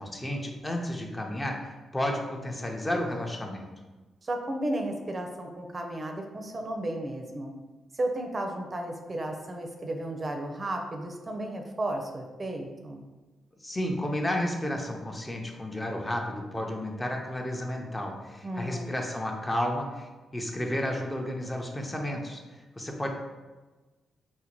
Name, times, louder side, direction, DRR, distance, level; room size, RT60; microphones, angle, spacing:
voice 1, 0.0-3.6 13.6-23.1, left 1 dB, 20° left, 1 dB, 0.6 m, -32 dB
voice 2, 4.2-7.5 7.9-13.0 18.4-18.9, right 1 dB, 40° right, 3 dB, 0.5 m, -33 dB
3.7 x 2.1 x 2.9 m, 1.2 s
hypercardioid pair, 45°, 0 cm